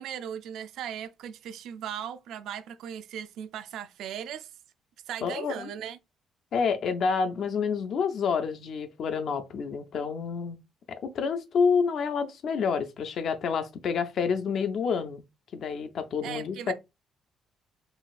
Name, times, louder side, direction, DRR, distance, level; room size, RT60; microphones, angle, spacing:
voice 1, 0.0-4.5 5.1-6.0 16.2-16.7, right 9 dB, 70° right, 0.3 m, -38 dB
voice 2, 5.2-5.7 6.5-10.6 10.9-15.2 15.5-16.7, left 6 dB, 45° left, 0.4 m, -28 dB
3.9 x 2.4 x 2.3 m
cardioid pair, 180°, 0 cm